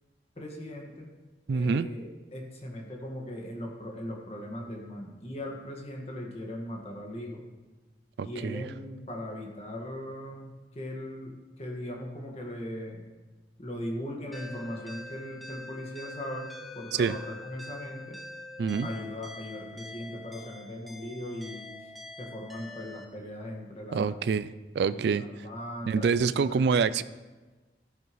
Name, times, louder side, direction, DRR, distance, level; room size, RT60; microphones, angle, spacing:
voice 1, 0.4-1.1 1.5-7.5 8.2-13.0 13.6-18.2 18.8-21.8 22.2-24.2 24.9-26.8, left 1 dB, 35° left, 0 dB, 1.7 m, -39 dB
voice 2, 1.5-1.9 8.2-8.7 16.9-17.2 18.6-18.9 23.9-25.2 25.9-27.0, right 5 dB, 70° right, 15 dB, 0.3 m, -26 dB
sound 1, 14.3-23.0, left 2 dB, ahead, 0.8 m, -45 dB
13.5 x 10.0 x 3.1 m, 1.2 s
head